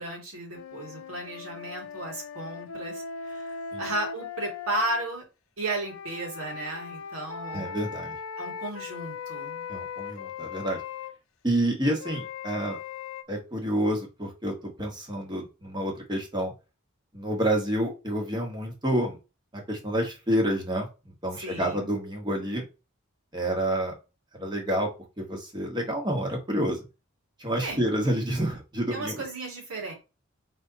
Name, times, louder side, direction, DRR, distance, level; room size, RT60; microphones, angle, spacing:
voice 1, 0.0-5.2 5.6-7.8 8.4-9.6 21.4-21.9 27.6-27.8 28.9-29.9, right 2 dB, 90° right, -1 dB, 2.5 m, -34 dB
sound 1, 0.5-5.1 5.8-11.2 12.0-13.2, left 6 dB, 75° left, 0.5 m, -39 dB
voice 2, 7.5-8.2 9.7-10.8 11.4-12.8 13.3-16.5 17.1-19.2 19.5-22.6 23.3-23.9 24.3-24.9 25.2-26.8 27.4-29.2, right 1 dB, 20° right, 2 dB, 1.3 m, -28 dB
4.0 x 3.3 x 4.0 m, 0.29 s
head